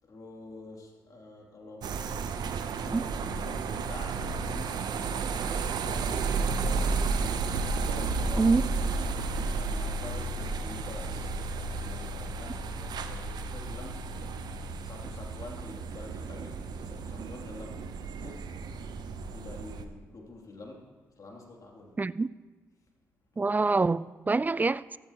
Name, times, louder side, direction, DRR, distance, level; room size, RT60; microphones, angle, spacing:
voice 1, 0.0-2.3 2.8-4.2 4.5-7.1 7.7-9.1 9.4-14.0 14.8-18.5 19.2-20.8 21.1-22.0, left 2 dB, 55° left, 0 dB, 2.8 m, -47 dB
sound 1, 1.8-19.8, right 4 dB, 65° right, 0.7 m, -32 dB
voice 2, 22.0-22.3 23.4-25.0, right 3 dB, 20° right, 19 dB, 0.3 m, -25 dB
15.0 x 12.5 x 3.0 m, 1.3 s
hypercardioid pair, 45°, 8 cm